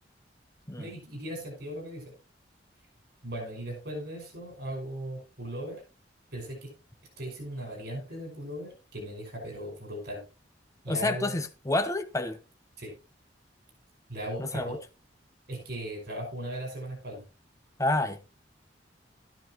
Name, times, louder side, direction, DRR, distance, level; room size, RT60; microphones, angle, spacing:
voice 1, 0.8-2.0 3.2-5.8 6.3-6.7 7.2-10.2 10.8-11.4 12.8-12.9 14.1-14.8 15.5-17.2, right 1 dB, 60° right, 5.5 m, -38 dB
voice 2, 10.9-12.4 14.4-14.8 17.8-18.2, left 2 dB, 15° left, 0.9 m, -29 dB
13.0 x 10.5 x 3.1 m
head